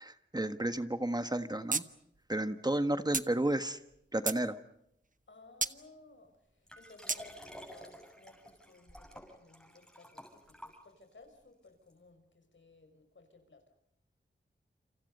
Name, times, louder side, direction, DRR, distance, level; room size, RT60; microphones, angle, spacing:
voice 1, 0.0-1.8 2.3-3.8 4.1-4.6, right 1 dB, 20° right, 10 dB, 1.5 m, -32 dB
sound 1, 1.7-1.8 2.1-2.2 3.1-3.3 3.9-4.4 5.6-5.8 7.1-7.2, right 3 dB, 45° right, 1.1 m, -32 dB
voice 2, 5.3-13.6, left 3 dB, 75° left, 7 dB, 5.9 m, -58 dB
Liquid, 6.7-11.2 11.9-12.0, equal, 5° left, 7.2 m, -51 dB
29.0 x 28.0 x 5.5 m, 0.78 s
wide cardioid pair, 65°, 19 cm